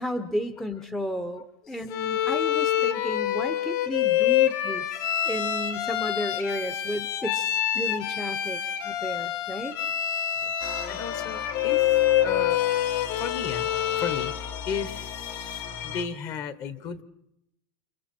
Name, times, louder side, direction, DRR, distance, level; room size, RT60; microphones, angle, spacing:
voice 1, 0.0-9.8, equal, 5° left, 10 dB, 0.8 m, -33 dB
Bowed string instrument, 1.9-14.4, left 11 dB, 65° left, 2.9 m, -26 dB
sound 1, 10.6-16.0, left 8 dB, 80° left, 3.8 m, -37 dB
voice 2, 10.9-11.9 12.2-12.6 13.2-13.7 14.0-17.0, left 6 dB, 30° left, 14 dB, 1.2 m, -34 dB
29.5 x 26.5 x 4.4 m, 0.81 s
supercardioid pair, 165°, 12 cm